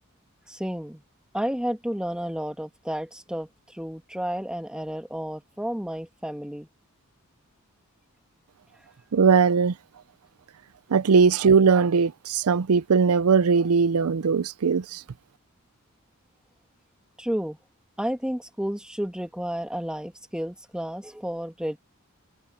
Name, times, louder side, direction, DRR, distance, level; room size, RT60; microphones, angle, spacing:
voice 1, 0.5-1.0 1.3-6.7 17.2-17.6 18.0-21.8, equal, 5° right, 1.6 m, -31 dB
voice 2, 9.1-9.7 10.9-15.0, right 5 dB, 90° right, 0.5 m, -20 dB
head